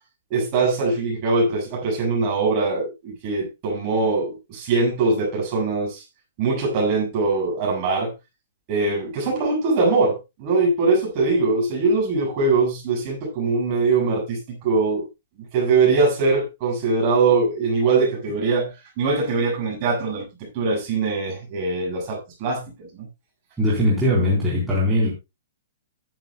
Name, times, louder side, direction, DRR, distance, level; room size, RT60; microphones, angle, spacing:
voice 1, 0.3-6.0 6.4-8.1 8.7-15.1 15.5-23.1, right 3 dB, 25° right, 7.0 m, -22 dB
voice 2, 23.6-25.1, left 1 dB, 5° right, 4.0 m, -20 dB
14.5 x 11.5 x 2.3 m
hypercardioid pair, 175°, 0 cm